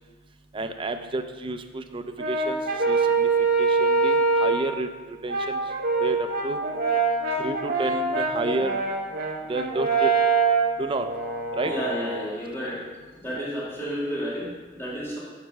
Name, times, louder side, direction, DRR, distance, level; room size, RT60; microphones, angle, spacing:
voice 1, 0.5-2.6 2.9-3.3 3.6-4.9 5.2-5.6 6.0-6.6 7.4-8.8 9.5-10.1 10.8-11.1 11.5-11.7 13.3-13.5, right 2 dB, 25° right, 7 dB, 0.5 m, -30 dB
Brass instrument, 2.2-4.7 5.3-12.2, right 4 dB, 50° right, 1.2 m, -24 dB
voice 2, 11.6-12.8 13.2-15.2, equal, 15° left, -8 dB, 2.0 m, -31 dB
7.4 x 4.5 x 6.0 m, 1.4 s
head